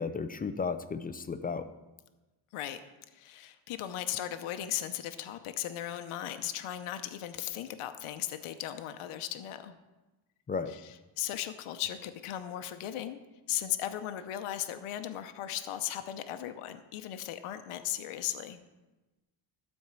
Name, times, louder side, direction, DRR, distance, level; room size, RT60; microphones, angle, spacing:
voice 1, 0.0-1.7 10.5-10.7, left 5 dB, 20° left, 10 dB, 0.3 m, -34 dB
voice 2, 3.1-9.8 10.7-13.2 13.5-18.6, left 12 dB, 90° left, 9 dB, 0.8 m, -37 dB
12.5 x 4.5 x 7.4 m, 1.1 s
cardioid pair, 140°, 49 cm